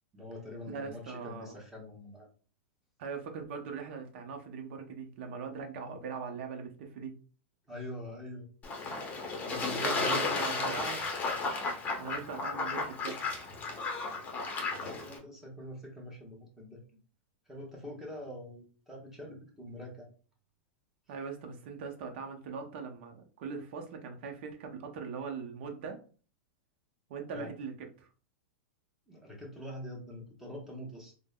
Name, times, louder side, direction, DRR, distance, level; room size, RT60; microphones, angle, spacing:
voice 1, 0.1-2.3 7.7-8.5 9.4-10.9 14.1-14.2 14.7-16.8 17.5-20.1 27.3-27.5 29.1-31.1, equal, 5° right, -3 dB, 1.1 m, -44 dB
voice 2, 0.7-1.5 3.0-7.2 9.8-11.0 12.0-13.2 21.1-26.0 27.1-28.1, right 5 dB, 60° right, 3 dB, 0.7 m, -40 dB
Fowl / Bird / Water, 8.6-15.2, left 3 dB, 25° left, 0.7 m, -34 dB
3.3 x 2.1 x 2.2 m, 0.38 s
hypercardioid pair, 130°, 7 cm